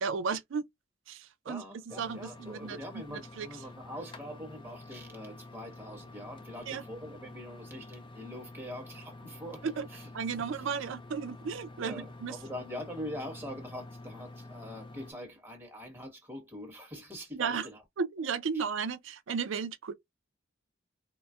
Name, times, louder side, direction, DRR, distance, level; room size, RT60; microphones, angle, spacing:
voice 1, 0.0-0.6 1.1-1.6 2.0-2.8 3.1-3.5 6.7-6.8 9.8-9.9 10.1-12.3 17.3-17.6 18.0-19.9, right 5 dB, 65° right, 0.4 m, -34 dB
voice 2, 1.5-10.1 10.5-10.7 11.8-17.8 18.2-18.3 18.5-18.6, equal, 10° right, 1.2 m, -43 dB
sound 1, 1.9-15.1, left 2 dB, 25° left, 0.4 m, -49 dB
3.9 x 2.1 x 2.3 m
head